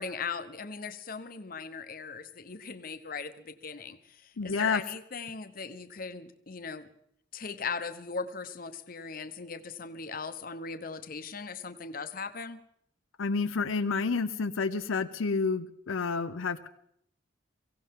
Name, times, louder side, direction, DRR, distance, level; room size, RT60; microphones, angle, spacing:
voice 1, 0.0-6.9 7.3-12.6, left 5 dB, 45° left, 9 dB, 0.9 m, -39 dB
voice 2, 4.4-4.8 13.2-16.7, left 4 dB, 90° left, 9 dB, 0.6 m, -29 dB
23.5 x 16.5 x 3.7 m, 0.70 s
head